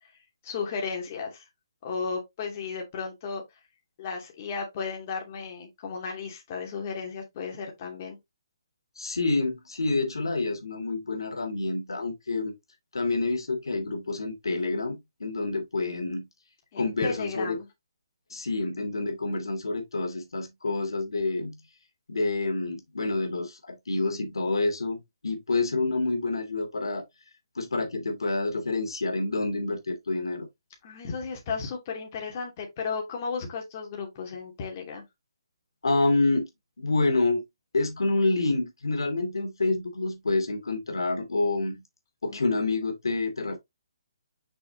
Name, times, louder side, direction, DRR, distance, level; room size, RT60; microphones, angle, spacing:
voice 1, 0.4-1.4 1.8-3.4 4.0-8.2 16.7-17.7 30.8-35.0 42.2-42.5, left 5 dB, 30° left, 2.7 m, -34 dB
voice 2, 9.0-12.5 12.9-16.3 16.8-17.6 18.3-21.6 22.1-27.0 27.6-30.5 35.8-36.5 36.8-37.4 37.7-41.8 42.2-43.6, left 3 dB, 85° left, 2.5 m, -28 dB
6.2 x 6.1 x 2.8 m
hypercardioid pair, 160°, 2 cm